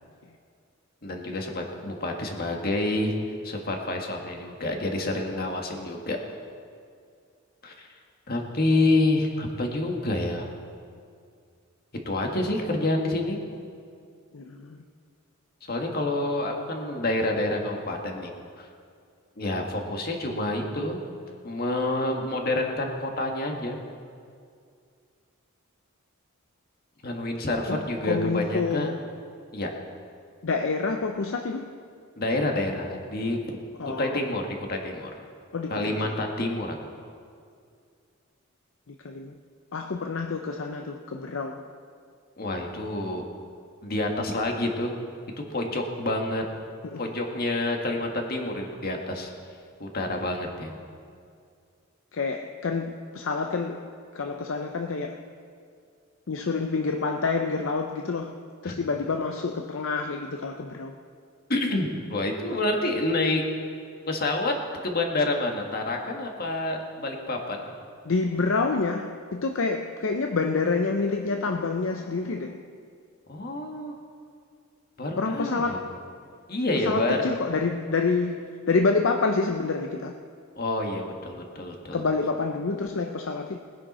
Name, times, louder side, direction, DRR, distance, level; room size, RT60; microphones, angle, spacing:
voice 1, 1.0-3.1 3.4-6.2 7.6-7.9 8.3-10.5 12.1-13.4 15.6-18.3 18.6-18.7 19.4-21.0 21.4-23.8 27.0-28.9 29.5-29.7 32.2-33.6 33.8-35.1 35.7-36.8 42.4-43.3 43.8-44.9 45.4-46.4 47.0-49.3 49.8-50.7 58.6-58.8 61.5-63.4 64.1-64.6 64.8-67.6 73.3-73.9 75.0-75.8 76.5-77.2 80.6-82.0, left 2 dB, 45° left, 1.7 m, -28 dB
voice 2, 14.3-14.8 27.7-29.1 30.4-31.7 33.8-34.2 35.5-36.2 38.9-39.4 39.7-41.7 46.8-47.0 52.1-53.9 54.1-55.3 56.3-61.0 68.0-72.6 75.2-76.0 76.7-80.2 81.9-83.6, left 4 dB, 65° left, 0.6 m, -28 dB
20.5 x 10.5 x 4.3 m
head